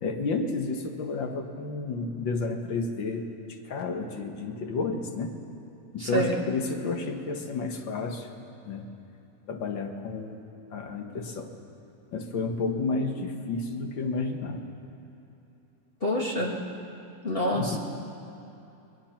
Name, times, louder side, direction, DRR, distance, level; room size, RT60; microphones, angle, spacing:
voice 1, 0.0-3.3 3.7-5.4 5.9-8.3 8.6-8.8 9.5-10.4 10.7-11.5 12.1-14.6 17.6-17.8, left 3 dB, 55° left, 3 dB, 1.3 m, -31 dB
voice 2, 6.0-6.4 12.7-12.8 16.0-16.6 17.2-17.8, equal, 35° left, -3 dB, 0.9 m, -27 dB
29.0 x 21.0 x 5.9 m, 2.9 s
omnidirectional pair, 4.2 m